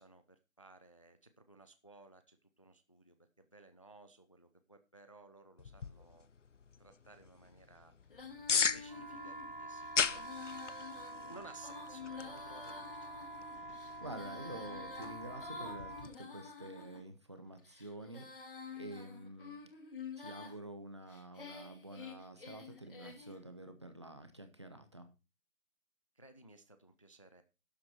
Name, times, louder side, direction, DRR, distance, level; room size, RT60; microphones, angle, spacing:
voice 1, 0.0-6.3 6.8-7.9 8.3-13.6 26.2-27.4, right 3 dB, 25° left, 9 dB, 0.6 m, -59 dB
sound 1, 5.6-16.2, left 6 dB, 65° left, 0.7 m, -40 dB
Female singing, 8.1-17.0 17.6-20.6 21.1-23.4, left 5 dB, 40° left, 2.2 m, -50 dB
sound 2, 8.9-16.1, right 2 dB, 40° right, 0.4 m, -47 dB
voice 2, 14.0-19.6 20.2-25.1, right 1 dB, 20° right, 8 dB, 0.9 m, -49 dB
12.0 x 7.9 x 4.3 m, 0.29 s
figure-of-eight pair, 165°, 40 cm